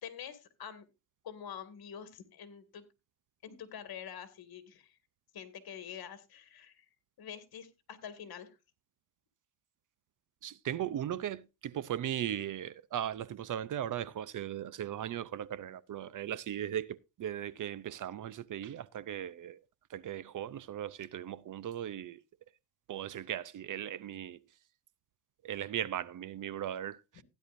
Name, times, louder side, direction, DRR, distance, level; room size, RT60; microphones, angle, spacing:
voice 1, 0.0-0.9 1.2-2.9 3.4-5.0 5.3-6.9 7.2-8.6, left 8 dB, 60° left, 2.3 m, -46 dB
voice 2, 10.4-19.6 19.9-22.2 22.9-24.4 25.4-27.2, right 10 dB, 50° right, 0.6 m, -38 dB
16.0 x 10.5 x 2.6 m
cardioid pair, 115°, 42 cm